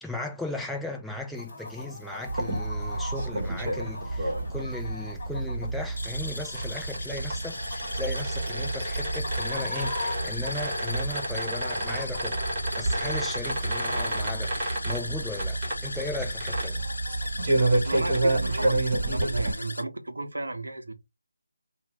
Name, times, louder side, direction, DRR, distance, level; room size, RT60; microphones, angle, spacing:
voice 1, 0.0-12.5 12.8-16.9, left 2 dB, ahead, 0.4 m, -37 dB
Chicken rooster, 1.3-19.1, left 2 dB, 35° left, 1.9 m, -43 dB
sound 1, 1.6-19.8, left 2 dB, 70° left, 0.7 m, -39 dB
sound 2, 2.3-19.5, right 2 dB, 30° right, 1.4 m, -29 dB
voice 2, 17.8-20.9, right 2 dB, 75° right, 0.8 m, -34 dB
2.8 x 2.6 x 3.3 m
figure-of-eight pair, 160°, 0 cm